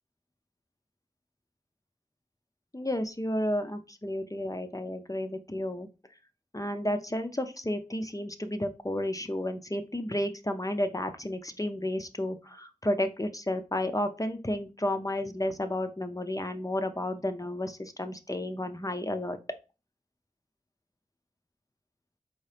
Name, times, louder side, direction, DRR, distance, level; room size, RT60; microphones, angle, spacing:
voice 1, 2.7-5.9 6.5-19.4, left 1 dB, 25° left, 7 dB, 0.5 m, -32 dB
4.7 x 2.8 x 3.2 m, 0.30 s
wide cardioid pair, 50°, 15 cm